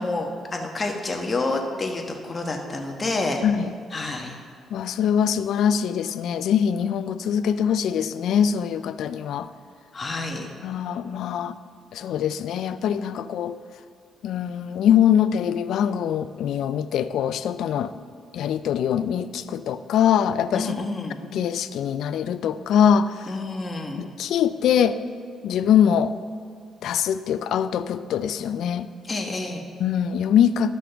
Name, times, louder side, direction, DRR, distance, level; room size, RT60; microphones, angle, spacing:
voice 1, 0.0-3.4 3.9-4.4 9.9-10.5 20.5-21.2 23.3-24.0 29.0-29.6, left 2 dB, 30° left, 2 dB, 1.1 m, -28 dB
voice 2, 3.4-3.7 4.7-9.5 10.6-11.6 11.9-13.6 14.2-17.9 18.3-20.9 21.3-23.3 24.0-25.0 25.4-26.1 26.8-28.9 29.8-30.7, left 8 dB, 75° left, 13 dB, 0.3 m, -23 dB
12.5 x 6.1 x 3.4 m, 2.1 s
cardioid pair, 90°, 0 cm